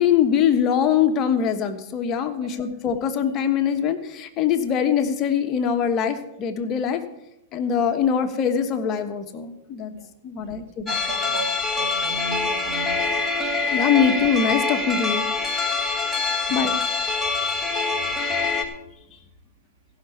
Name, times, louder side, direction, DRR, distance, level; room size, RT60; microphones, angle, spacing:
voice 1, 0.0-7.0 7.5-9.9 10.2-10.9 13.7-15.2 16.5-16.7 17.0-17.1 17.8-18.0, left 8 dB, 40° left, 7 dB, 1.2 m, -23 dB
voice 2, 10.4-13.2 15.7-15.8 16.5-16.6, right 4 dB, 70° right, 6 dB, 1.8 m, -36 dB
sound 1, 10.9-18.6, left 3 dB, 5° left, 1.5 m, -25 dB
16.0 x 6.0 x 7.0 m, 0.88 s
hypercardioid pair, 115°, 0 cm